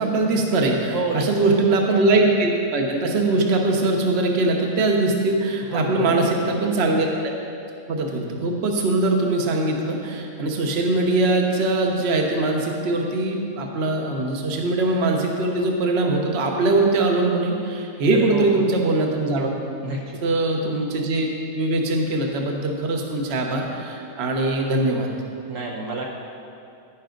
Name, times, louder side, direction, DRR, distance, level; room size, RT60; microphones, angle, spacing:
voice 1, 0.0-7.1 7.9-19.5 20.2-21.3 21.5-25.1, right 2 dB, 50° right, 1 dB, 1.2 m, -22 dB
voice 2, 0.9-1.3 5.7-6.5 18.1-18.5 19.8-20.4 25.5-26.0, right 3 dB, 65° right, -1 dB, 1.2 m, -29 dB
10.0 x 10.0 x 3.9 m, 2.6 s
omnidirectional pair, 1.5 m